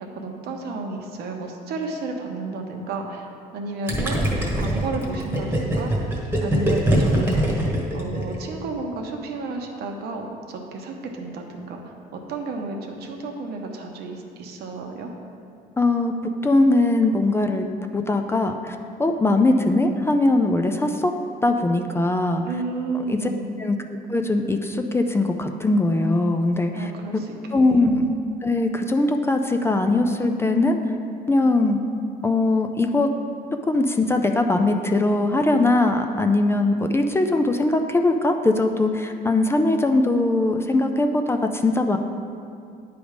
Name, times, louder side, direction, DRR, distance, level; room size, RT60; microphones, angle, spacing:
voice 1, 0.1-3.3 3.5-6.1 6.4-7.6 7.9-15.1 22.5-23.5 26.7-27.9, right 3 dB, 70° right, 2 dB, 0.9 m, -32 dB
Gurgling, 3.9-8.6, right 1 dB, 15° right, 1.2 m, -22 dB
voice 2, 15.8-17.7 17.9-21.1 21.4-22.4 23.1-23.3 23.6-23.8 24.1-27.2 27.5-28.1 28.4-30.8 31.3-31.8 32.2-33.1 33.6-42.0, left 2 dB, 15° left, 5 dB, 0.3 m, -21 dB
9.4 x 3.4 x 5.0 m, 2.4 s
cardioid pair, 110°, 17 cm